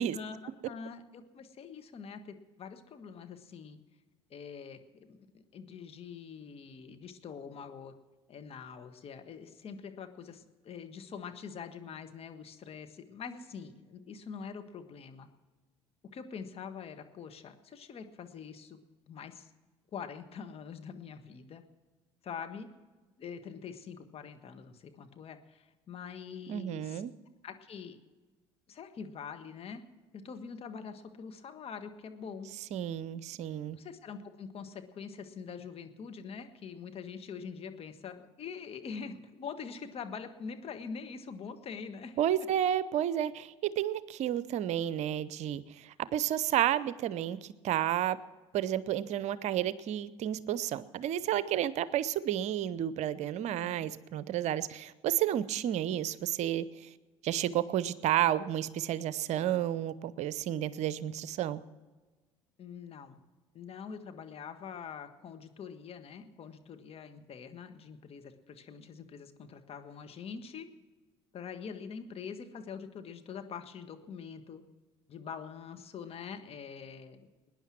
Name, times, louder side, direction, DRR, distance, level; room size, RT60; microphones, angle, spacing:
voice 1, 0.1-3.8 4.3-7.9 8.3-15.3 16.1-18.8 19.1-19.5 19.9-21.6 22.2-22.7 23.2-27.0 27.4-28.0 28.7-29.8 30.1-32.5 33.7-42.2 53.5-53.9 61.7-61.8 62.6-63.2 63.5-70.7 71.3-74.6 75.1-77.3, left 6 dB, 45° left, 7 dB, 1.6 m, -44 dB
voice 2, 26.5-27.1 32.7-33.8 42.2-48.2 48.5-56.7 57.2-61.6, right 11 dB, 55° right, 17 dB, 0.7 m, -31 dB
21.0 x 10.0 x 6.1 m, 1.3 s
hypercardioid pair, 65°, 14 cm